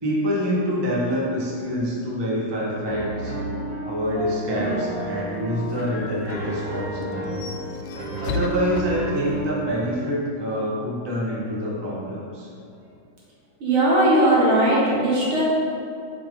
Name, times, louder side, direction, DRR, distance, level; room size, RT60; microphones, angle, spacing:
voice 1, 0.0-3.3 3.8-7.3 8.2-12.5, equal, 15° right, -5 dB, 0.9 m, -26 dB
Piano, 2.9-9.7, right 2 dB, 55° right, 2.1 m, -32 dB
sound 1, 4.6-9.6, left 5 dB, 75° left, 1.3 m, -36 dB
voice 2, 13.6-15.4, right 1 dB, 80° right, -6 dB, 2.5 m, -18 dB
8.5 x 4.4 x 3.8 m, 2.5 s
omnidirectional pair, 2.3 m